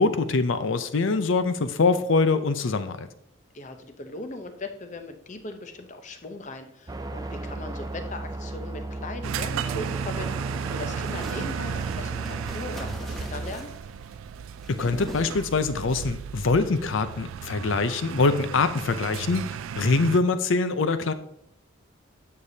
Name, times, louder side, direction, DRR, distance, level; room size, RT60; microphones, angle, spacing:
voice 1, 0.0-3.1 14.7-19.5 19.8-21.1, left 3 dB, 70° left, 11 dB, 0.6 m, -24 dB
voice 2, 3.5-13.7, left 2 dB, 35° left, 7 dB, 0.7 m, -39 dB
sound 1, 6.9-13.5, right 2 dB, 20° right, 0.4 m, -35 dB
sound 2, 9.2-20.2, right 7 dB, 90° right, 0.3 m, -35 dB
sound 3, 10.1-15.9, equal, ahead, 0.9 m, -44 dB
10.0 x 6.7 x 2.8 m, 0.76 s
head